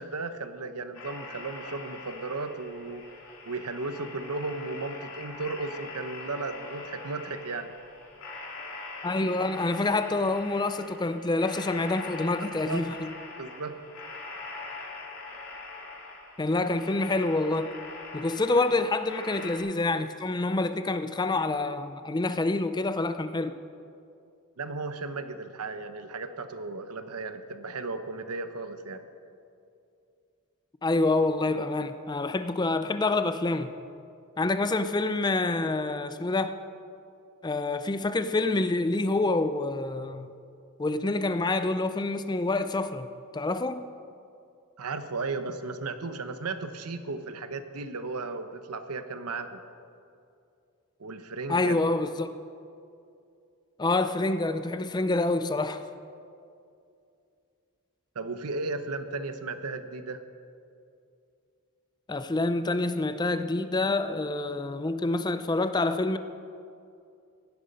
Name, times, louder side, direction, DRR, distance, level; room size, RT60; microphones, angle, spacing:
voice 1, 0.0-3.1 3.4-7.7 12.4-12.9 13.4-13.8 24.6-29.0 44.8-49.6 51.0-51.8 58.1-60.2, right 3 dB, 85° right, 0.9 m, -35 dB
sound 1, 0.9-19.6, left 3 dB, 70° left, 2.8 m, -43 dB
voice 2, 9.0-13.1 16.4-17.7 18.1-23.5 30.8-33.7 34.4-36.6 37.4-40.3 40.8-43.1 43.3-43.9 51.5-52.3 53.8-55.8 62.1-66.2, left 2 dB, 20° left, 0.4 m, -27 dB
16.5 x 11.5 x 5.4 m
head